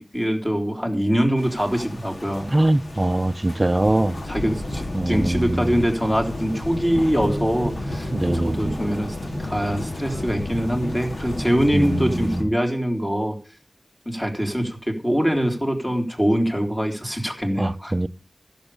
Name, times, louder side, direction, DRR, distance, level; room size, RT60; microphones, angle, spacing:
voice 1, 0.0-2.5 4.3-13.4 14.1-17.9, equal, 10° left, 3.5 m, -23 dB
sound 1, 1.4-12.4, left 1 dB, 85° left, 2.6 m, -31 dB
voice 2, 2.5-4.2 4.9-5.7 8.1-8.8 11.7-12.4 17.6-18.1, right 1 dB, 35° right, 0.6 m, -22 dB
14.5 x 7.2 x 6.9 m
wide cardioid pair, 60°, 0 cm